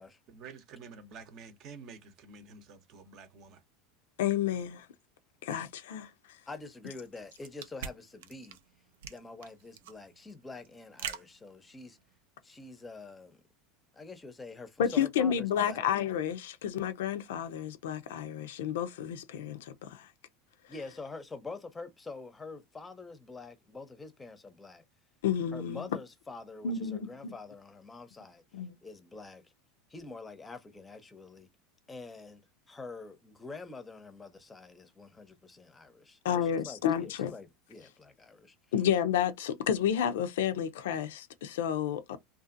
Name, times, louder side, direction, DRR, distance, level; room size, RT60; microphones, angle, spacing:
voice 1, 0.3-3.6, right 5 dB, 50° right, 0.7 m, -49 dB
voice 2, 4.2-4.9 5.4-6.1 14.8-20.1 25.2-25.8 26.6-27.3 28.5-28.7 36.2-37.3 38.7-42.2, left 9 dB, 85° left, 0.4 m, -30 dB
voice 3, 6.5-8.6 9.1-12.0 12.4-13.4 13.9-15.9 20.7-24.8 25.5-28.4 28.8-29.4 29.9-31.5 31.9-38.6, left 3 dB, 15° left, 0.6 m, -46 dB
sound 1, 6.9-12.2, right 8 dB, 90° right, 0.4 m, -44 dB
2.6 x 2.4 x 2.5 m
supercardioid pair, 120°, 0 cm